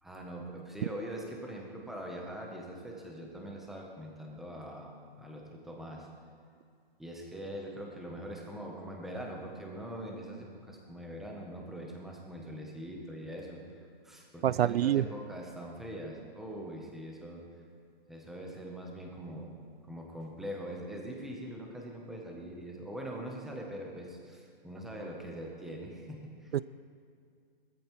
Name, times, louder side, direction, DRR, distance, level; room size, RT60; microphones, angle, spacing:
voice 1, 0.0-6.1 7.0-17.5 18.1-19.6 19.9-26.6, right 1 dB, ahead, -1 dB, 0.6 m, -42 dB
voice 2, 14.4-15.0 26.5-26.6, right 11 dB, 85° right, 19 dB, 0.5 m, -26 dB
19.5 x 14.0 x 3.0 m, 2.3 s
hypercardioid pair, 165°, 30 cm